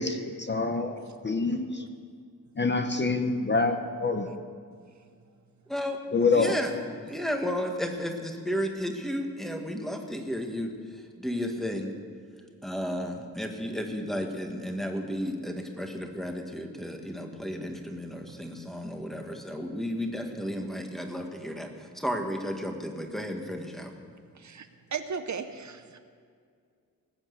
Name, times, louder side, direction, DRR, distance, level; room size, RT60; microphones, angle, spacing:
voice 1, 0.0-1.9 2.6-4.3 6.1-6.5, left 3 dB, 30° left, 7 dB, 0.8 m, -26 dB
voice 2, 5.7-6.7 7.0-11.9 12.6-23.9, equal, ahead, 3 dB, 1.4 m, -33 dB
voice 3, 24.3-26.0, right 6 dB, 55° right, 9 dB, 0.7 m, -36 dB
19.0 x 7.2 x 8.2 m, 2.2 s
wide cardioid pair, 150°, 35 cm